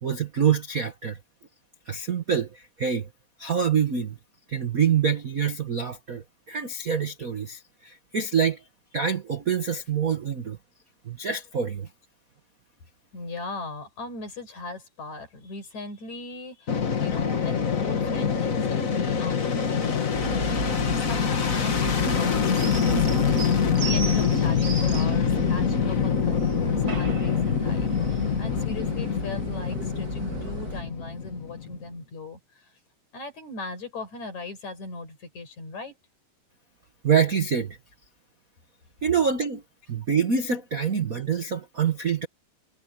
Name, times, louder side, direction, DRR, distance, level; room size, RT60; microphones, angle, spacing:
voice 1, 0.0-1.2 1.9-3.1 3.4-4.2 4.5-8.6 8.9-10.6 11.0-11.9 37.0-37.8 39.0-39.6 39.9-42.3, right 7 dB, 75° right, 0.8 m, -26 dB
voice 2, 13.1-20.1 20.6-32.7 33.1-35.9, left 3 dB, 60° left, 6.7 m, -39 dB
Fixed-wing aircraft airplane, 16.7-31.8, left 6 dB, 40° left, 1.3 m, -25 dB
sound 1, 20.1-30.8, right 4 dB, 35° right, 1.7 m, -34 dB
omnidirectional pair, 3.8 m